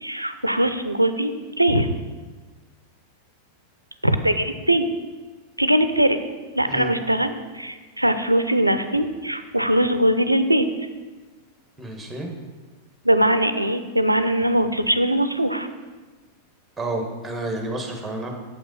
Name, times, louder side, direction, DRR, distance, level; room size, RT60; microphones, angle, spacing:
voice 1, 0.0-1.3 1.6-1.9 4.0-4.9 5.6-6.2 6.5-10.7 13.0-15.7, right 1 dB, 85° right, 10 dB, 0.4 m, -21 dB
voice 2, 11.8-12.3 16.8-18.3, right 2 dB, 5° right, 2 dB, 1.4 m, -30 dB
7.3 x 5.7 x 5.4 m, 1.3 s
figure-of-eight pair, 90°, 0 cm